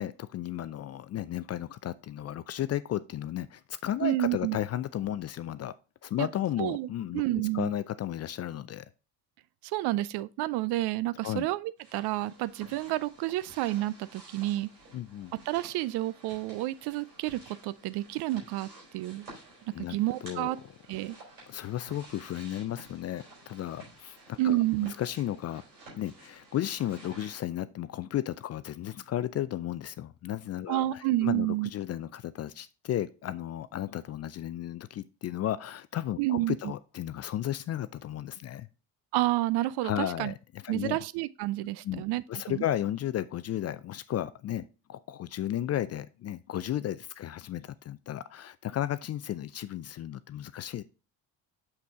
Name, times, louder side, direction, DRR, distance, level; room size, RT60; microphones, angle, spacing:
voice 1, 0.0-5.7 6.0-7.2 7.5-8.8 11.2-11.5 14.9-15.3 19.7-20.0 20.2-20.6 21.5-25.6 26.0-38.7 39.8-41.0 41.8-42.0 42.3-50.8, left 12 dB, 35° left, 0.4 m, -34 dB
voice 2, 4.0-4.6 6.2-6.3 6.6-7.7 9.6-14.7 15.5-19.3 19.8-20.6 20.9-21.2 24.4-24.9 30.7-31.7 36.2-36.6 39.1-40.3 40.7-42.6, right 16 dB, 55° right, 0.5 m, -30 dB
sound 1, 11.8-27.4, right 2 dB, 85° right, 4.4 m, -52 dB
6.6 x 5.8 x 3.6 m
hypercardioid pair, 55°, 49 cm